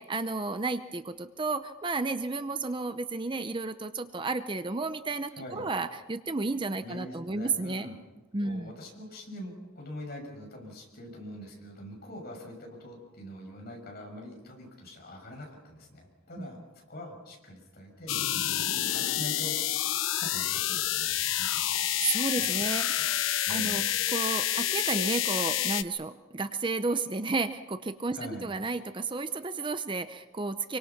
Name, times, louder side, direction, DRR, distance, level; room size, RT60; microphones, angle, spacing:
voice 1, 0.0-7.9 8.3-8.7 16.4-16.5 22.0-23.2 23.5-23.8 24.1-30.8, right 3 dB, 20° right, 10 dB, 0.7 m, -32 dB
voice 2, 5.4-5.7 6.8-8.0 8.4-19.6 19.9-21.8 22.3-22.5 23.0-23.1 23.4-23.8 28.1-28.5, left 1 dB, 45° left, 1 dB, 6.7 m, -44 dB
sound 1, 18.1-25.8, left 12 dB, 70° left, 0.8 m, -28 dB
26.5 x 24.0 x 5.9 m, 1.2 s
head